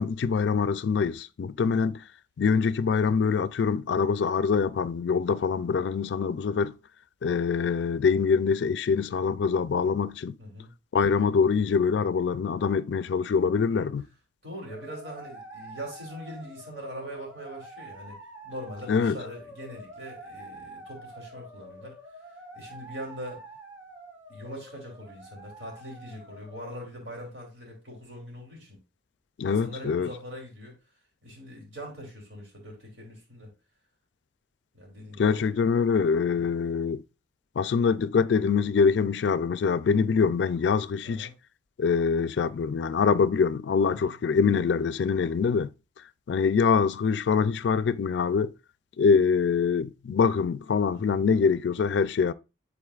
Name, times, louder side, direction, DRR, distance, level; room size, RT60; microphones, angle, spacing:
voice 1, 0.0-2.0 2.4-6.8 7.2-10.4 10.9-14.1 18.9-19.2 29.4-30.1 35.2-37.0 37.6-41.3 41.8-45.7 46.3-48.5 49.0-52.3, left 5 dB, 70° left, 0.4 m, -24 dB
voice 2, 10.4-10.7 13.6-13.9 14.4-18.2 18.4-22.0 22.5-23.4 24.3-28.8 29.4-30.7 31.2-33.5 34.7-35.7 36.3-36.5 41.0-41.3 43.9-44.1 50.9-51.2, equal, 80° right, 3.0 m, -42 dB
sound 1, 14.7-26.8, right 1 dB, 10° right, 1.2 m, -46 dB
11.0 x 3.9 x 2.4 m
head